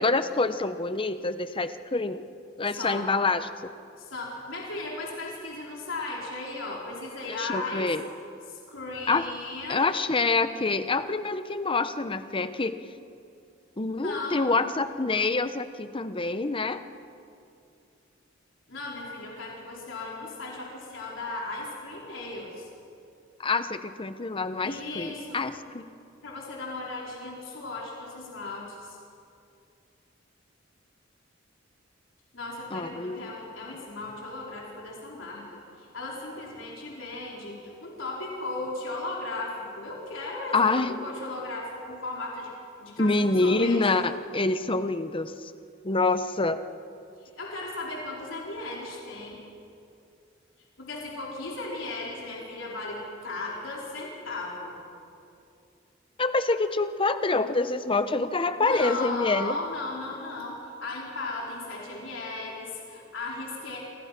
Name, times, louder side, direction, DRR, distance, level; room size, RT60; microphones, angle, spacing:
voice 1, 0.0-2.2 2.6-3.5 7.3-8.0 9.1-9.2 9.7-12.8 13.8-16.8 23.4-25.9 32.7-33.2 40.5-41.0 43.0-45.5 45.8-46.6 56.2-59.6, left 3 dB, 25° left, 11 dB, 0.9 m, -26 dB
voice 2, 2.8-3.1 4.0-7.9 8.5-9.8 14.0-14.6 18.7-22.7 24.6-25.4 26.2-29.0 32.3-35.4 35.8-42.5 42.8-43.8 47.2-49.4 50.8-54.8 58.6-63.8, left 2 dB, 75° left, -3 dB, 4.7 m, -36 dB
28.5 x 24.5 x 6.0 m, 2.5 s
head